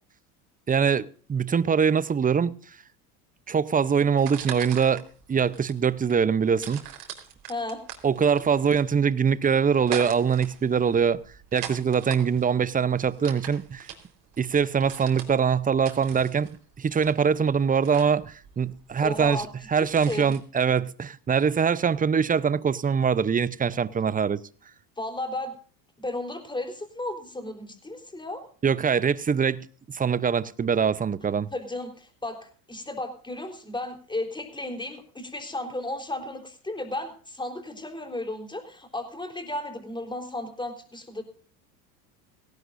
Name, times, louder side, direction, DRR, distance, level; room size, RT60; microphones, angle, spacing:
voice 1, 0.7-2.5 3.5-5.0 5.3-6.8 8.0-11.2 11.5-13.9 14.4-16.5 16.8-24.4 28.6-29.7 29.9-31.5, right 6 dB, 20° right, 0.7 m, -23 dB
sound 1, 4.2-20.4, right 10 dB, 60° right, 4.3 m, -42 dB
voice 2, 7.5-7.8 19.0-19.5 19.8-20.3 25.0-25.5 26.0-28.4 31.5-41.2, left 2 dB, 10° left, 4.0 m, -34 dB
18.0 x 17.0 x 2.6 m
hypercardioid pair, 85°, 44 cm